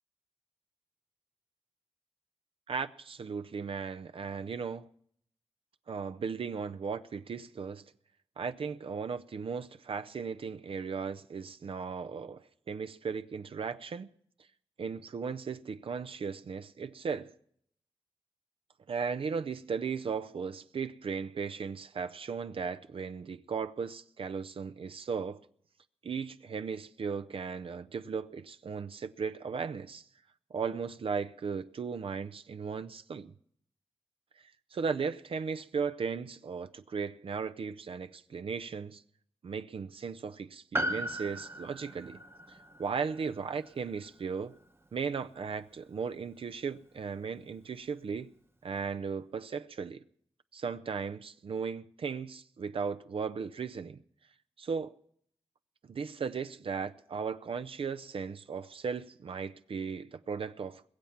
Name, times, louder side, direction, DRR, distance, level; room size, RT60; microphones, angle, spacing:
voice 1, 2.7-4.9 5.9-7.9 8.4-14.1 14.8-17.3 18.9-25.4 26.0-30.0 30.5-33.3 34.4-39.0 39.4-42.2 42.5-44.6 44.9-48.3 48.6-50.0 50.5-54.0 54.6-54.9 55.9-60.9, right 5 dB, 65° right, 0.5 m, -36 dB
Piano, 40.7-45.3 45.6-45.7, right 1 dB, 25° right, 0.9 m, -38 dB
21.5 x 7.3 x 5.8 m
cardioid pair, 65°, 10 cm